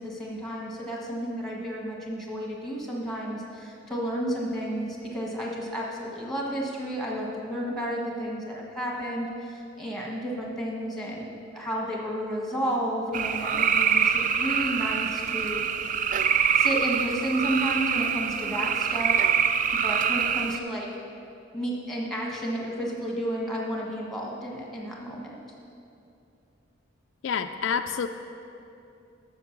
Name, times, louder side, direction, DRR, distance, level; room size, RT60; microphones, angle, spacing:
voice 1, 0.0-15.6 16.5-19.2 19.7-20.9 21.5-25.4, equal, ahead, -2 dB, 1.3 m, -32 dB
sound 1, 13.1-20.6, right 7 dB, 40° right, 0.3 m, -25 dB
voice 2, 27.2-28.1, left 6 dB, 65° left, 8 dB, 0.3 m, -28 dB
8.2 x 6.5 x 7.2 m, 2.6 s
head